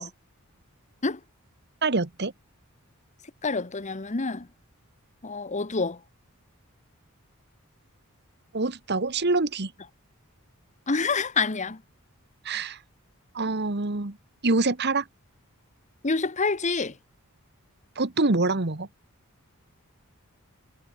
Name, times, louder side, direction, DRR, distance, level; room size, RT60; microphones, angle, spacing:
voice 1, 1.8-2.3 8.5-9.7 12.4-12.8 13.3-14.2 14.4-15.1 17.9-18.9, right 3 dB, 50° right, 1.5 m, -25 dB
voice 2, 3.4-4.4 5.2-6.0 10.9-11.8 16.0-16.9, left 4 dB, 35° left, 1.1 m, -27 dB
head